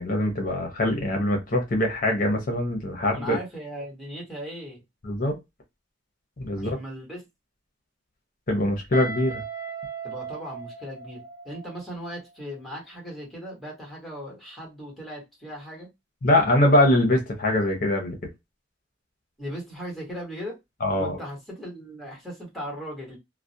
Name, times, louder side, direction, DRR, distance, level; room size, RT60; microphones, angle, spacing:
voice 1, 0.0-3.4 5.0-5.4 6.4-6.7 8.5-9.4 16.2-18.1 20.8-21.2, left 1 dB, 50° left, 0.7 m, -23 dB
voice 2, 3.1-4.8 6.6-7.2 10.0-15.9 19.4-20.6 21.0-23.2, equal, ahead, 1.2 m, -38 dB
Guitar, 8.9-11.8, right 4 dB, 20° right, 0.8 m, -37 dB
2.4 x 2.1 x 2.6 m
head